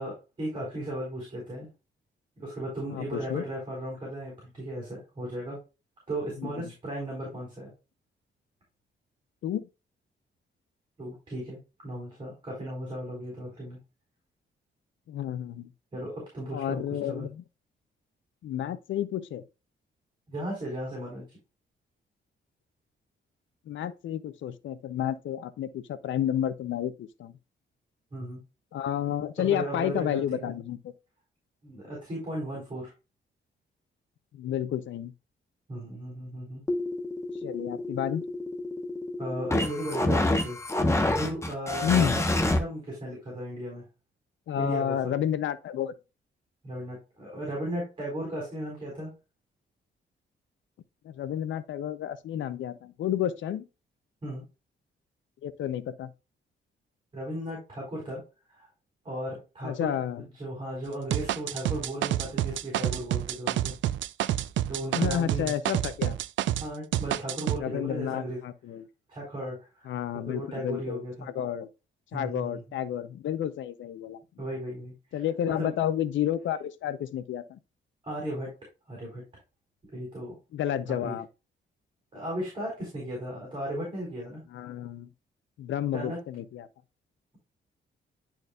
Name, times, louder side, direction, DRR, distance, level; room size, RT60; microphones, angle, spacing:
voice 1, 0.0-1.7 2.4-5.6 6.1-7.7 11.0-13.8 15.9-16.8 17.1-17.3 20.3-21.4 28.1-28.4 29.4-30.5 31.6-32.9 35.7-36.6 39.2-40.6 41.1-43.8 44.6-45.0 46.6-49.1 54.2-54.4 57.1-58.2 58.5-58.7 59.0-63.7 64.7-65.5 66.6-68.4 69.1-69.9 70.3-71.3 72.1-72.6 74.4-75.2 75.6-75.7 78.0-78.5 78.9-79.2 79.9-80.4 80.9-81.2 82.1-84.4 85.9-86.2, right 1 dB, 25° right, 4.3 m, -36 dB
voice 2, 2.9-3.4 6.4-6.7 9.4-9.6 15.1-15.7 16.5-17.4 18.4-19.4 23.7-27.4 28.7-30.9 34.3-35.1 37.4-38.2 41.8-42.2 44.5-46.0 51.0-53.7 55.4-56.1 59.6-60.3 64.9-66.2 67.6-68.9 69.9-71.7 72.1-74.2 75.1-77.6 80.5-81.3 84.5-85.1 85.6-86.7, left 10 dB, 80° left, 0.7 m, -31 dB
sound 1, 36.7-42.6, left 1 dB, 15° left, 1.1 m, -28 dB
sound 2, 61.1-66.7 66.9-67.6, right 13 dB, 75° right, 0.4 m, -28 dB
11.0 x 4.6 x 2.4 m
wide cardioid pair, 160°, 19 cm